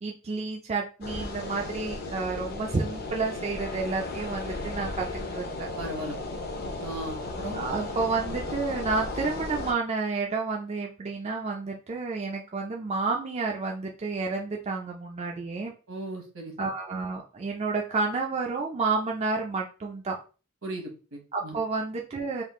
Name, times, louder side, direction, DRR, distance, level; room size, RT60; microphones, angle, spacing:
voice 1, 0.0-5.1 5.3-5.7 7.5-15.7 16.6-20.2 21.3-22.4, right 4 dB, 30° right, 0 dB, 0.4 m, -30 dB
sound 1, 1.0-9.7, left 2 dB, 45° left, 0.6 m, -35 dB
voice 2, 5.8-6.2 6.8-7.6 15.9-16.5 20.6-21.6, right 1 dB, 75° right, 2 dB, 1.1 m, -37 dB
3.5 x 2.4 x 3.6 m, 0.35 s
head